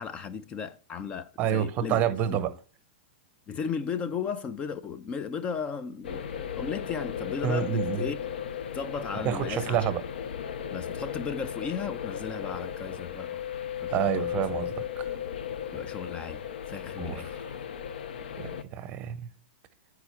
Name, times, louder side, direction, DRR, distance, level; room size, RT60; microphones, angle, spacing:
voice 1, 0.0-2.0 2.3-2.4 3.5-8.2 8.7-9.9 10.7-13.4 13.8-14.3 15.7-17.4, left 6 dB, 20° left, 0.4 m, -35 dB
voice 2, 1.4-2.5 7.4-8.1 9.2-10.0 13.9-15.2 17.0-17.2 18.4-19.3, right 10 dB, 30° right, 0.7 m, -28 dB
sound 1, 6.0-18.6, left 9 dB, 80° left, 0.6 m, -35 dB
9.5 x 4.8 x 4.5 m
hypercardioid pair, 145°, 5 cm